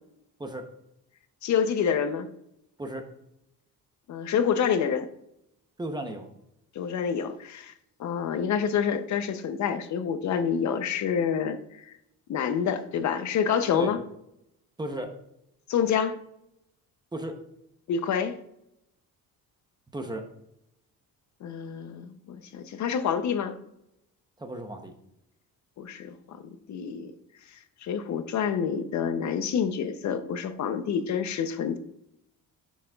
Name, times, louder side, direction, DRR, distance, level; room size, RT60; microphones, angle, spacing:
voice 1, 1.4-2.3 4.1-5.1 6.8-7.7 8.0-11.9 12.3-14.0 15.7-16.2 17.9-18.4 21.4-23.5 25.8-26.4 26.7-27.1 27.8-31.8, left 7 dB, 50° left, 9 dB, 0.6 m, -27 dB
voice 2, 5.8-6.3 13.7-13.9 14.8-15.1 17.1-17.4 19.9-20.3 24.4-24.9, right 1 dB, 10° right, 5 dB, 0.7 m, -34 dB
10.0 x 6.2 x 2.3 m, 0.80 s
cardioid pair, 160°, 36 cm